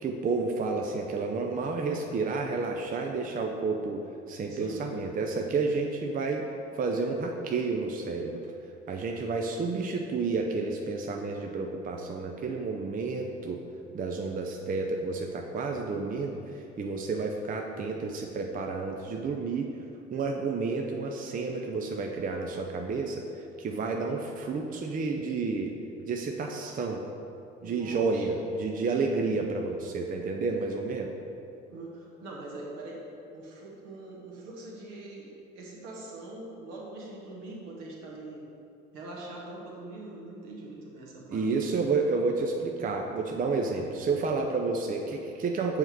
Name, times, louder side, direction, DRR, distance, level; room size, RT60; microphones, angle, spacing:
voice 1, 0.0-6.5 6.8-8.5 8.9-13.6 13.9-19.7 20.1-25.7 26.1-27.1 27.6-31.1 41.3-45.8, right 4 dB, 25° right, 2 dB, 0.6 m, -30 dB
voice 2, 4.5-4.9 27.6-28.3 31.7-33.0 33.3-38.4 38.9-41.7, right 2 dB, 60° right, -3 dB, 1.5 m, -43 dB
7.6 x 4.4 x 4.7 m, 2.7 s
figure-of-eight pair, 50°, 33 cm